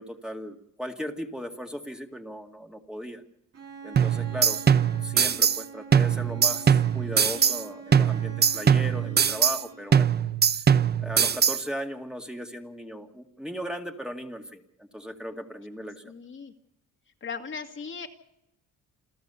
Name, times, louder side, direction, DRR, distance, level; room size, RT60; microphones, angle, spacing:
voice 1, 0.0-3.2 3.8-4.6 5.0-10.1 11.0-16.0, equal, ahead, 2 dB, 2.1 m, -37 dB
Bowed string instrument, 3.5-10.2, right 5 dB, 55° right, 6.1 m, -44 dB
sound 1, 4.0-5.6 5.9-7.6 7.9-9.6 9.9-11.6, right 7 dB, 35° right, 0.7 m, -22 dB
voice 2, 16.0-16.5 17.2-18.1, left 5 dB, 40° left, 4 dB, 2.1 m, -37 dB
28.5 x 13.5 x 7.0 m, 0.83 s
cardioid pair, 90°, 30 cm